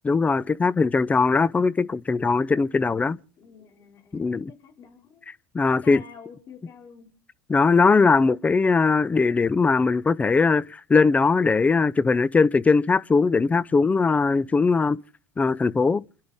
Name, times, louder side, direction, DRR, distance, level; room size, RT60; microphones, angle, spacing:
voice 1, 0.0-3.2 4.1-4.5 5.5-6.0 7.5-15.0 15.4-16.0, left 4 dB, 20° left, 0.7 m, -20 dB
voice 2, 3.4-5.3 5.7-7.1, left 6 dB, 45° left, 4.9 m, -48 dB
29.0 x 11.5 x 3.6 m
hypercardioid pair, 85°, 8 cm